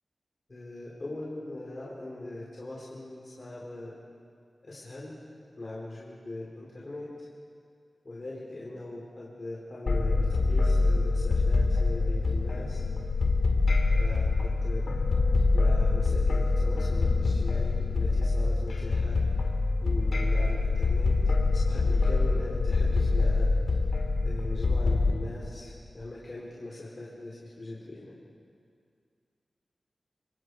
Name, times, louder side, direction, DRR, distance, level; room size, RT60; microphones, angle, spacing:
voice 1, 0.5-3.9 4.6-5.1 5.6-7.1 8.0-12.8 14.0-14.8 15.5-19.2 19.8-21.2 21.5-23.5 24.2-28.0, left 2 dB, 45° left, -5 dB, 4.1 m, -40 dB
sound 1, 9.9-25.1, left 3 dB, 75° left, 2.3 m, -25 dB
26.0 x 24.5 x 4.8 m, 2.2 s
cardioid pair, 55°, 0 cm